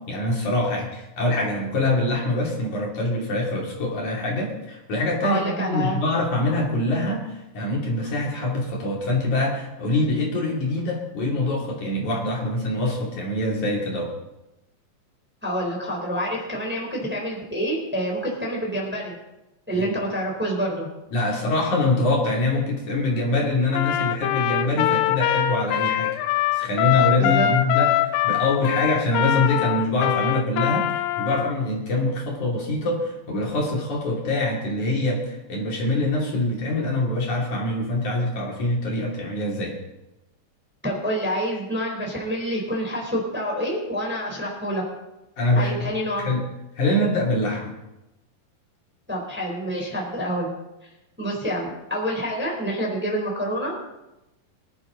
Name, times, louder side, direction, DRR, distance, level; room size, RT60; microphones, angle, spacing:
voice 1, 0.0-14.1 19.7-20.0 21.1-39.8 45.4-45.9 46.2-46.5 46.8-47.7, left 2 dB, 55° left, -2 dB, 4.1 m, -24 dB
voice 2, 5.2-6.0 15.4-19.1 19.7-20.9 27.2-27.5 40.8-44.8 45.6-46.3 49.1-50.5 51.2-53.7, equal, 5° right, -2 dB, 3.3 m, -27 dB
Trumpet, 23.7-31.5, left 13 dB, 85° left, 2.5 m, -23 dB
24.5 x 11.5 x 3.9 m, 0.97 s
omnidirectional pair, 4.1 m